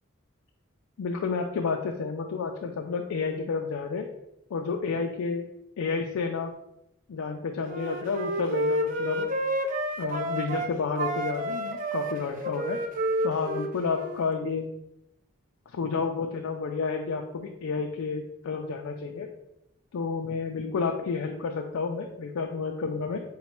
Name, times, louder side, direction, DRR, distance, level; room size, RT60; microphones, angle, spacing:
voice 1, 1.0-4.1 4.5-5.5 5.8-6.5 7.1-9.3 10.0-12.8 13.2-14.7 15.7-19.3 19.9-23.2, left 4 dB, 85° left, 2 dB, 0.4 m, -30 dB
Wind instrument woodwind instrument, 7.7-10.7 11.0-14.3, equal, 40° right, 0.3 m, -30 dB
4.0 x 2.2 x 4.3 m, 0.85 s
head